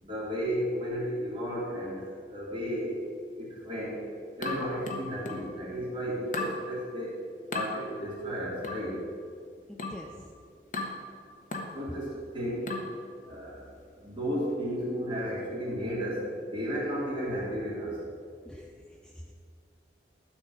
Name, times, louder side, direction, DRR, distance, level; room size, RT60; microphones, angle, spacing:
voice 1, 0.0-2.0 2.3-2.9 3.4-4.0 4.4-7.1 7.5-9.0 11.7-12.7 13.3-13.6 14.0-16.2 16.5-18.0, equal, 30° right, -6 dB, 3.1 m, -33 dB
sound 1, 4.4-5.5 6.3-6.6 7.5-7.7 8.6-8.9 9.8-10.1 10.7-11.0 11.5-11.8 12.7-13.0, left 3 dB, 45° left, 1.2 m, -35 dB
voice 2, 9.7-10.3 18.5-19.3, equal, 5° left, 0 dB, 0.5 m, -47 dB
13.0 x 4.6 x 8.0 m, 2.1 s
head